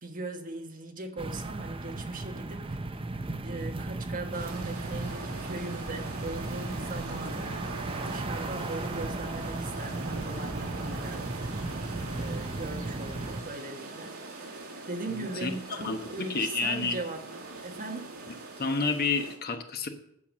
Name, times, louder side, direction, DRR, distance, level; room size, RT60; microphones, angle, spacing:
voice 1, 0.0-2.6 3.4-7.6 7.9-11.3 12.1-14.1 14.9-17.2 17.6-18.1, right 2 dB, 40° right, 3 dB, 1.4 m, -39 dB
sound 1, 1.2-13.4, right 2 dB, 25° right, 0.6 m, -36 dB
sound 2, 4.3-19.4, right 2 dB, 70° right, 2.0 m, -41 dB
voice 2, 15.1-17.0 18.6-19.9, left 4 dB, 45° left, 5 dB, 1.1 m, -30 dB
8.6 x 6.9 x 7.4 m, 0.75 s
head